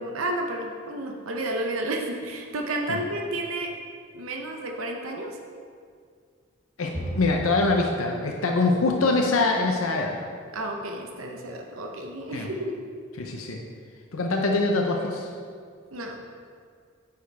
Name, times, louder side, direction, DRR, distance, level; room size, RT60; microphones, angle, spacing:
voice 1, 0.0-3.7 4.1-5.3 10.5-12.8 15.9-16.2, right 1 dB, 80° right, 1 dB, 0.8 m, -31 dB
voice 2, 6.8-10.2 12.3-12.5 13.2-13.6 14.1-15.3, left 3 dB, 85° left, 1 dB, 0.7 m, -24 dB
Bowed string instrument, 6.9-10.3, right 1 dB, 60° right, 2.1 m, -39 dB
9.5 x 6.6 x 3.5 m, 2.1 s
head